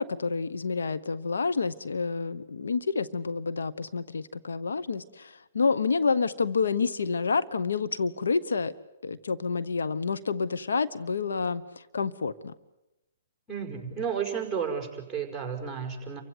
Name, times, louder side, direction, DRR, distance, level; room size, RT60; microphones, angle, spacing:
voice 1, 0.0-8.7 9.0-12.5, left 4 dB, 90° left, 13 dB, 1.1 m, -28 dB
voice 2, 13.5-16.2, right 7 dB, ahead, 0 dB, 5.5 m, -32 dB
29.0 x 16.0 x 9.5 m, 0.97 s
hypercardioid pair, 150°, 0 cm